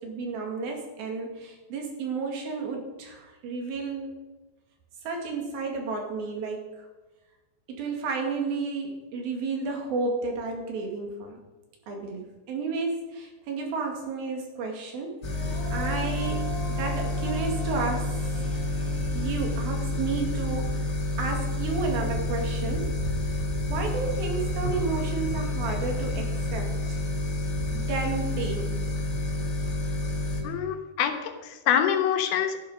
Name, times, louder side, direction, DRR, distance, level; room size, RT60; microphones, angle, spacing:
voice 1, 0.0-4.1 5.0-6.9 7.7-11.4 11.9-18.1 19.1-23.0 23.3-23.4 23.7-26.7 27.7-28.8, right 4 dB, 75° right, 2 dB, 3.9 m, -32 dB
sound 1, 15.2-30.4, left 2 dB, 40° left, 1.5 m, -29 dB
Female singing, 15.2-20.4, equal, 35° right, 3.6 m, -42 dB
voice 2, 30.4-32.6, left 9 dB, 80° left, 6 dB, 3.1 m, -25 dB
12.5 x 11.5 x 5.4 m, 1.1 s
omnidirectional pair, 4.3 m